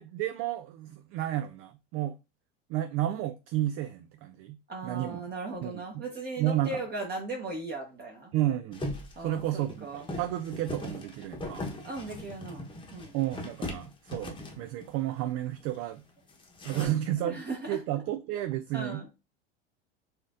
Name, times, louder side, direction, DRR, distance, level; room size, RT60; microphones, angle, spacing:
voice 1, 0.0-2.2 2.7-4.6 4.8-5.2 5.6-5.8 6.4-6.8 8.3-11.7 13.1-16.0 16.6-17.4 17.7-19.1, right 13 dB, 45° right, 0.4 m, -32 dB
voice 2, 4.7-8.3 9.2-10.0 11.8-13.2 16.7-17.8 18.7-19.1, right 2 dB, 30° right, 1.0 m, -38 dB
sound 1, 8.7-15.0 15.3-15.4 15.6-16.0 16.3-16.9, left 2 dB, 15° left, 0.9 m, -40 dB
4.3 x 2.5 x 2.5 m
hypercardioid pair, 95°, 31 cm